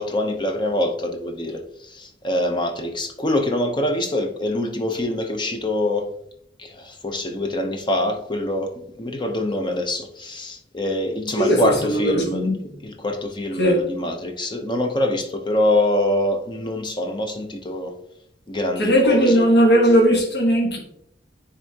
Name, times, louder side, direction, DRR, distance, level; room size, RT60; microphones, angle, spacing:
voice 1, 0.0-6.1 6.6-12.5 12.8-17.9 18.5-19.4, left 1 dB, 25° left, 0.8 m, -24 dB
voice 2, 11.4-12.6 13.6-13.8 18.8-20.8, equal, 65° left, 1.3 m, -18 dB
9.8 x 3.7 x 2.8 m
head